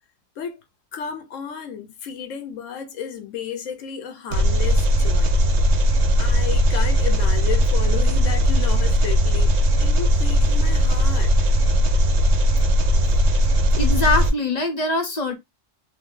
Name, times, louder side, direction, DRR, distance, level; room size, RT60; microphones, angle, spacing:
voice 1, 0.9-5.4 6.2-9.5 9.8-11.6 12.9-13.0, left 7 dB, 80° left, 1.1 m, -33 dB
Engine, 4.3-14.3, equal, 80° right, 1.0 m, -18 dB
voice 2, 13.8-15.4, left 2 dB, 45° left, 0.6 m, -23 dB
2.6 x 2.5 x 3.6 m
omnidirectional pair, 1.3 m